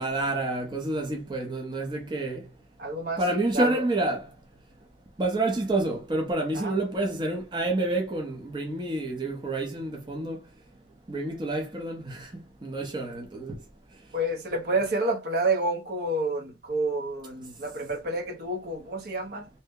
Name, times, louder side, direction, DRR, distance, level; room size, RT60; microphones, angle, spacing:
voice 1, 0.0-2.4 3.2-4.2 5.2-10.4 11.1-12.3 12.6-13.6, right 2 dB, 25° right, 0.6 m, -28 dB
voice 2, 2.8-3.8 6.5-6.8 14.1-19.5, right 2 dB, 60° right, 0.7 m, -29 dB
2.7 x 2.1 x 3.5 m
head